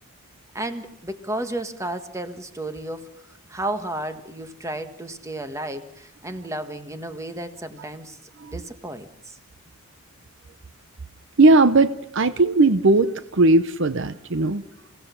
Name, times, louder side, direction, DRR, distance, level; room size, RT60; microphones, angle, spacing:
voice 1, 0.5-3.1 3.5-9.4, right 1 dB, 15° right, 9 dB, 1.5 m, -33 dB
voice 2, 11.4-14.6, right 2 dB, 60° right, 13 dB, 0.8 m, -18 dB
26.5 x 16.5 x 7.1 m, 0.79 s
head